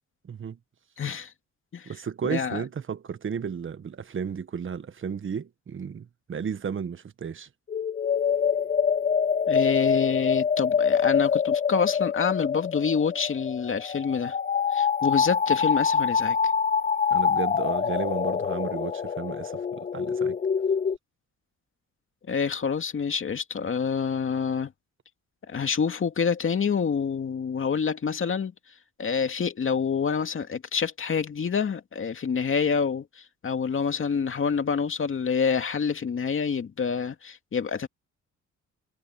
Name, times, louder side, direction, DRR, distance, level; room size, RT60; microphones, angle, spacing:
voice 1, 0.2-0.6 1.8-7.5 17.1-20.4, right 7 dB, 40° right, 1.4 m, -33 dB
voice 2, 1.0-1.3 1.7-1.9 2.2-2.6 9.5-14.4 14.7-16.4 22.3-24.7 25.5-28.5 29.0-37.9, left 6 dB, 45° left, 2.4 m, -27 dB
sound 1, 7.7-21.0, left 6 dB, 25° left, 0.5 m, -25 dB
cardioid pair, 90°, 30 cm